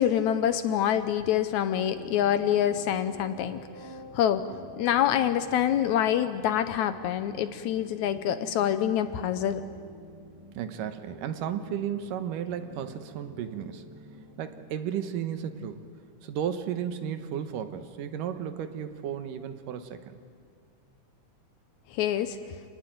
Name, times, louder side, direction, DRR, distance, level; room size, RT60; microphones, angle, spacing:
voice 1, 0.0-4.4 4.8-9.6 21.9-22.6, left 10 dB, 75° left, 12 dB, 1.9 m, -26 dB
sound 1, 1.7-14.7, equal, 10° right, 1.9 m, -49 dB
voice 2, 10.6-13.8 14.4-15.9 16.2-20.2, right 9 dB, 75° right, 10 dB, 2.7 m, -34 dB
26.5 x 19.5 x 9.2 m, 2.2 s
omnidirectional pair, 3.8 m